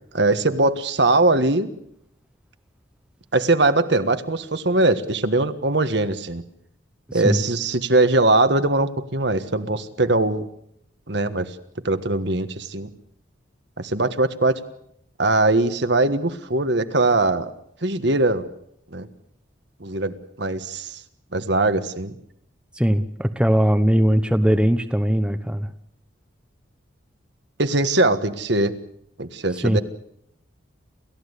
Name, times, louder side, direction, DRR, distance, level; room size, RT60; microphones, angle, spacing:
voice 1, 0.1-1.7 3.3-6.4 7.1-10.5 11.1-11.5 11.8-12.9 13.8-14.6 15.2-17.5 17.8-18.4 18.9-19.1 19.8-20.1 20.4-21.0 21.3-22.1 27.6-28.7 29.2-29.8, right 2 dB, 65° right, 9 dB, 1.5 m, -21 dB
voice 2, 7.1-7.4 22.7-25.7 29.5-29.8, equal, 5° right, 9 dB, 0.8 m, -20 dB
28.5 x 15.0 x 8.2 m, 0.75 s
head